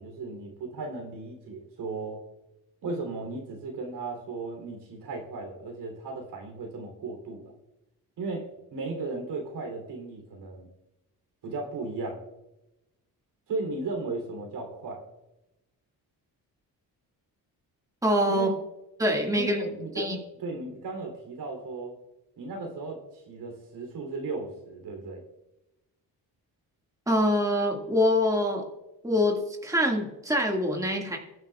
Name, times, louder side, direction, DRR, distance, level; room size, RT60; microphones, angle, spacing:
voice 1, 0.0-2.2 2.8-7.5 8.2-10.7 11.4-12.2 13.5-15.0 18.3-18.6 19.3-22.0 22.4-23.0 23.3-25.2, right 3 dB, 80° right, 2 dB, 3.2 m, -36 dB
voice 2, 18.0-18.5 19.0-19.6 20.0-20.2 27.1-28.6 29.0-31.2, equal, 10° right, 1 dB, 1.9 m, -25 dB
21.0 x 8.9 x 2.4 m, 0.95 s
cardioid pair, 95°, 39 cm